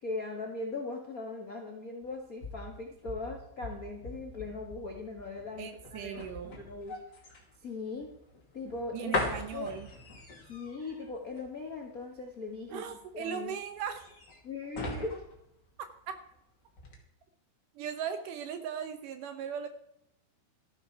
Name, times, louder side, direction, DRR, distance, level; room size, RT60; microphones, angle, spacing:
voice 1, 0.0-7.0 7.6-8.1 8.5-9.1 9.5-9.7 10.5-12.8 13.1-13.5 14.4-15.2, left 3 dB, 65° left, 1 dB, 0.8 m, -39 dB
sound 1, 2.0-16.4 16.7-17.0, left 2 dB, 30° left, 2.5 m, -41 dB
voice 2, 5.6-6.6 8.9-9.9 12.7-14.1 16.1-16.2 17.8-19.7, right 8 dB, 75° right, 8 dB, 2.1 m, -38 dB
14.0 x 11.5 x 4.6 m, 0.77 s
omnidirectional pair, 4.4 m